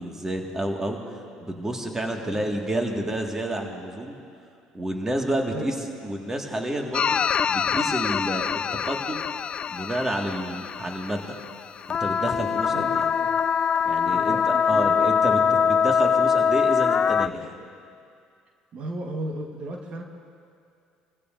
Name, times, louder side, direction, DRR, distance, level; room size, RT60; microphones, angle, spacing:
voice 1, 0.0-4.2 4.7-5.8 6.0-7.2 7.5-8.5 8.8-9.3 9.7-11.4 11.9-13.1 13.9-17.5, right 1 dB, 20° right, 1 dB, 1.8 m, -29 dB
voice 2, 2.1-2.5 5.5-5.8 12.7-13.3 14.0-15.1 18.7-20.0, right 1 dB, 50° right, 2 dB, 1.4 m, -36 dB
sound 1, 6.9-11.5 11.8-17.3, left 7 dB, 40° left, 0.3 m, -23 dB
24.0 x 15.5 x 2.6 m, 2.4 s
supercardioid pair, 75°, 3 cm